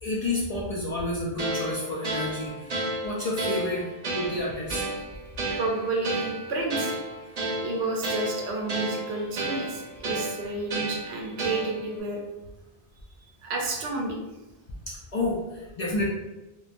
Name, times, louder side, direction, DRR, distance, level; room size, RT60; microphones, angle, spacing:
voice 1, 0.0-3.9 4.1-4.9 14.9-16.1, left 2 dB, 55° left, -4 dB, 0.4 m, -30 dB
sound 1, 1.4-12.0, right 2 dB, 45° right, 0.6 m, -32 dB
voice 2, 5.5-7.0 7.6-12.2 13.4-14.2, right 3 dB, 90° right, -1 dB, 0.9 m, -30 dB
3.0 x 2.1 x 2.4 m, 1.0 s
omnidirectional pair, 1.0 m